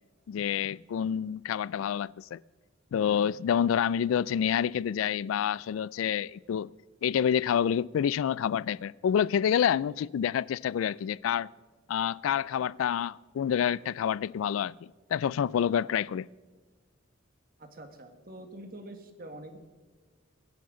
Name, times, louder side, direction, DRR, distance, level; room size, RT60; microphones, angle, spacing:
voice 1, 0.3-2.4 2.9-6.7 7.0-11.5 11.9-14.7 15.1-16.3, left 8 dB, 85° left, 0.3 m, -28 dB
voice 2, 17.6-19.6, right 1 dB, 45° right, 1.7 m, -45 dB
23.5 x 10.5 x 3.8 m
head